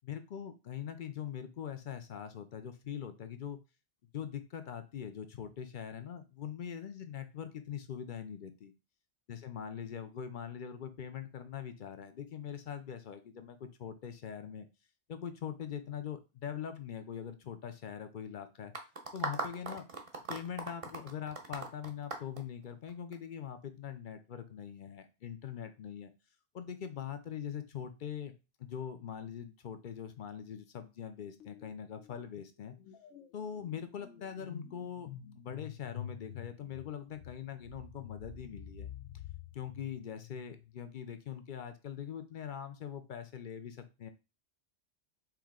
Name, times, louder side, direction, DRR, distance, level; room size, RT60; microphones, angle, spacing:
voice 1, 0.0-3.6 4.1-8.7 9.3-14.7 15.1-18.7 19.1-19.9 20.3-26.1 26.5-28.3 28.6-32.8 33.3-38.9 39.5-44.1, left 8 dB, 55° left, 9 dB, 0.6 m, -42 dB
sound 1, 18.7-23.1, right 3 dB, 35° right, 0.6 m, -39 dB
sound 2, 31.4-31.7 32.0-40.8, left 9 dB, 75° left, 1.0 m, -49 dB
4.6 x 3.1 x 3.6 m, 0.28 s
omnidirectional pair, 1.2 m